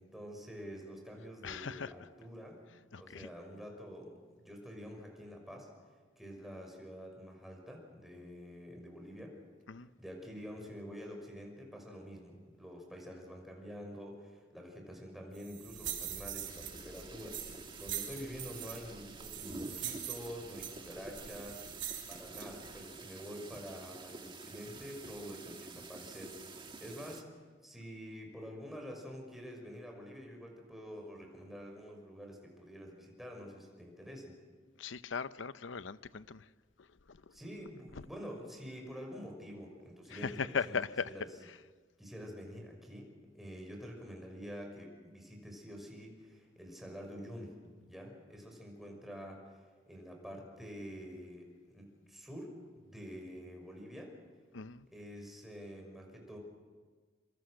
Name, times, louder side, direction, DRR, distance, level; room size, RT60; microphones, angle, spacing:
voice 1, 0.0-2.6 3.0-5.7 6.2-9.3 10.0-21.6 22.1-27.2 27.6-34.3 37.3-40.8 41.1-41.3 42.0-43.1 43.3-47.6 47.9-54.1 54.9-56.4, equal, ahead, 1 dB, 5.9 m, -47 dB
voice 2, 1.4-1.9 2.9-3.3 9.7-9.9 34.8-36.4 37.1-37.2 40.1-41.1 54.5-54.9, left 5 dB, 85° left, 14 dB, 0.7 m, -38 dB
sound 1, 15.3-22.8, right 10 dB, 70° right, 4.0 m, -44 dB
sound 2, 16.4-27.2, right 3 dB, 25° right, 1.7 m, -49 dB
26.5 x 25.0 x 6.5 m, 1.4 s
head